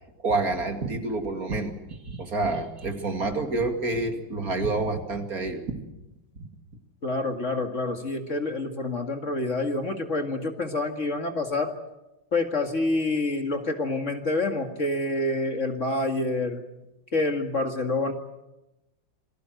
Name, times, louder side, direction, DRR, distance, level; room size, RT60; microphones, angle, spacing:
voice 1, 0.2-5.6 6.4-6.5, right 3 dB, 50° right, 5 dB, 2.8 m, -28 dB
voice 2, 7.0-11.7 12.3-16.6 17.1-18.1, left 2 dB, 40° left, 5 dB, 2.3 m, -27 dB
28.5 x 21.0 x 7.8 m, 0.95 s
omnidirectional pair, 2.0 m